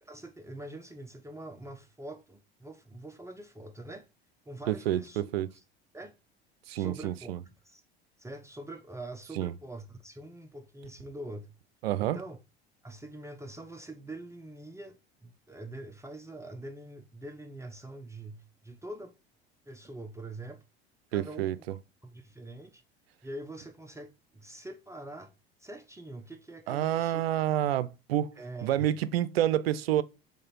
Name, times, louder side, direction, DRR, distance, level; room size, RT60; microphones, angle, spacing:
voice 1, 0.0-4.1 4.5-5.5 5.9-6.1 6.7-7.3 7.6-7.8 8.2-11.5 12.0-12.4 12.8-15.0 15.2-19.1 19.7-20.6 21.1-21.5 22.0-22.8 23.2-25.3 25.6-27.2 28.4-28.9, right 1 dB, 10° right, 0.9 m, -44 dB
voice 2, 4.7-5.5 6.7-7.4 9.4-9.5 11.8-12.2 21.1-21.7 26.7-28.3 28.6-30.0, right 12 dB, 75° right, 0.6 m, -28 dB
6.6 x 3.4 x 4.3 m
figure-of-eight pair, 70°, 30 cm